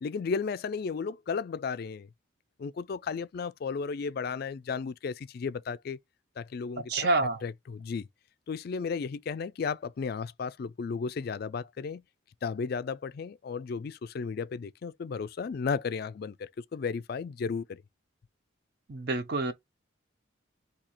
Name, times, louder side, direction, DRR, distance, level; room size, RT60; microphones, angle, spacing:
voice 1, 0.0-2.1 2.6-6.0 6.4-7.1 7.4-8.1 8.5-12.0 12.4-17.8, left 5 dB, 50° left, 0.3 m, -34 dB
voice 2, 6.9-7.4 18.9-19.5, right 3 dB, 50° right, 0.5 m, -27 dB
4.3 x 2.8 x 4.1 m
head